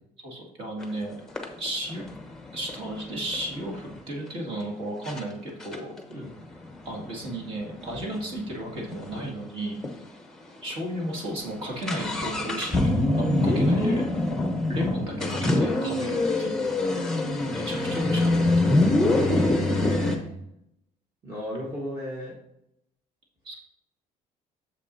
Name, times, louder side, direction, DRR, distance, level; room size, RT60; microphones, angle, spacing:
voice 1, 0.2-1.2 1.6-2.0 2.5-5.9 6.8-9.8 10.6-14.0 14.7-16.9 17.5-18.9 23.4-23.6, right 1 dB, 40° right, -1 dB, 2.1 m, -34 dB
sound 1, 0.8-0.9 1.4-4.0 4.6-4.7 5.1-5.2 5.6-9.3 9.6-9.7 9.8-10.0 10.6-10.7 11.0-20.2, left 2 dB, 5° left, 0.9 m, -25 dB
voice 2, 13.4-14.0 19.0-20.3 21.2-22.3, equal, 25° right, -5 dB, 1.3 m, -32 dB
9.1 x 6.9 x 2.7 m, 0.77 s
cardioid pair, 170°, 14 cm